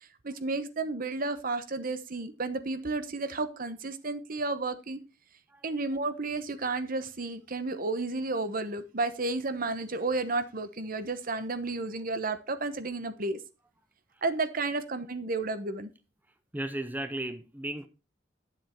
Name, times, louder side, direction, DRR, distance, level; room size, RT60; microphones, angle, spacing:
voice 1, 0.2-5.0 5.6-13.4 14.2-15.9, right 3 dB, 50° right, 1.0 m, -32 dB
voice 2, 16.5-17.9, right 1 dB, 10° right, 0.6 m, -35 dB
10.0 x 7.5 x 4.4 m
head